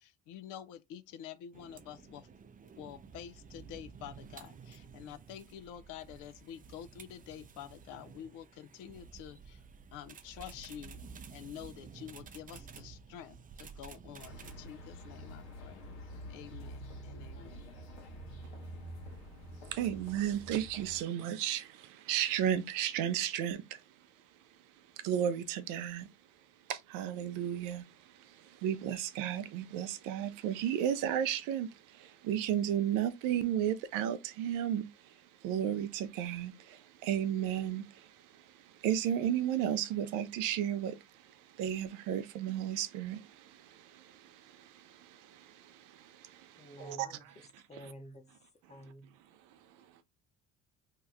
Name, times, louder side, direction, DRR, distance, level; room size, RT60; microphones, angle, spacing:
voice 1, 0.0-2.3 2.7-9.6 9.9-11.0 11.3-15.8 16.3-17.6, left 10 dB, 70° left, 0.5 m, -48 dB
sound 1, 1.5-14.7, right 6 dB, 25° right, 0.4 m, -52 dB
sound 2, 14.2-21.0, equal, 90° left, 1.1 m, -47 dB
voice 2, 19.7-24.1 24.4-26.1 26.7-47.9 49.4-50.0, right 10 dB, 70° right, 0.6 m, -34 dB
voice 3, 46.6-47.2 47.7-48.3 48.7-49.1, equal, 20° left, 0.9 m, -50 dB
2.8 x 2.3 x 3.4 m
hypercardioid pair, 65°, 33 cm